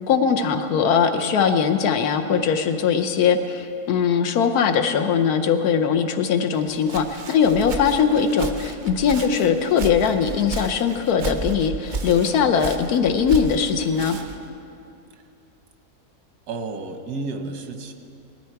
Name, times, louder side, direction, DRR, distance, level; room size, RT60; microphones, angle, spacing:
voice 1, 0.1-14.2, left 6 dB, 85° left, 7 dB, 1.2 m, -20 dB
Walk footsteps, 6.5-14.5, right 3 dB, 45° right, 0.7 m, -33 dB
voice 2, 16.5-17.9, right 3 dB, 90° right, 5 dB, 1.5 m, -31 dB
19.0 x 13.0 x 4.6 m, 2.7 s
omnidirectional pair, 1.6 m